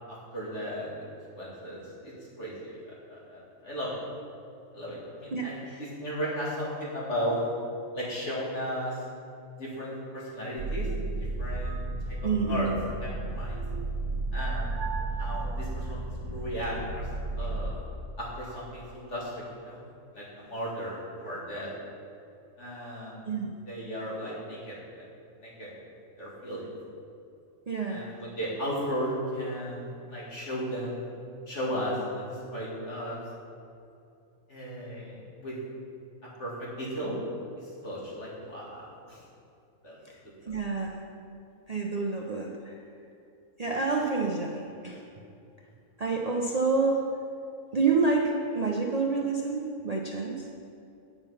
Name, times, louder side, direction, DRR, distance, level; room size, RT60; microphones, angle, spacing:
voice 1, 0.3-0.9 1.4-2.8 3.1-4.0 4.7-7.4 7.9-9.0 9.6-10.9 11.2-12.2 12.5-12.7 13.0-13.6 14.3-14.8 15.2-17.1 17.3-17.8 18.2-19.3 19.6-19.8 20.1-21.7 22.6-23.3 23.7-25.0 25.4-25.7 26.2-26.6 27.9-31.1 31.5-33.2 34.5-35.6 36.4-37.2 37.6-39.2 39.8-40.0 40.4-40.5, equal, 60° left, -6 dB, 2.8 m, -35 dB
voice 2, 5.3-5.8 12.2-12.8 23.2-23.5 27.7-28.0 40.1-40.2 40.5-41.0 41.7-42.8 43.6-45.0 46.0-47.0 47.7-50.5, right 4 dB, 40° right, -1 dB, 0.6 m, -28 dB
sound 1, 10.6-17.7, right 2 dB, 65° right, 0.9 m, -33 dB
8.8 x 7.0 x 5.7 m, 2.6 s
omnidirectional pair, 1.4 m